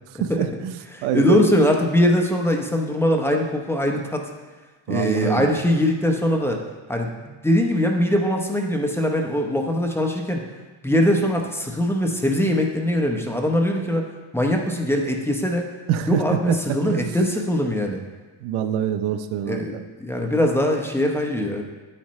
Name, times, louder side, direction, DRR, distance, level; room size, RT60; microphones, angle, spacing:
voice 1, 0.2-1.4 4.9-5.5 15.9-16.2 16.5-17.1 18.4-19.8, right 9 dB, 85° right, 9 dB, 0.7 m, -25 dB
voice 2, 0.9-4.2 4.9-6.6 6.9-10.4 10.8-14.1 14.3-15.7 16.1-18.0 19.5-21.6, left 1 dB, 5° left, 1 dB, 0.8 m, -22 dB
8.7 x 8.7 x 3.1 m, 1.3 s
cardioid pair, 135°, 47 cm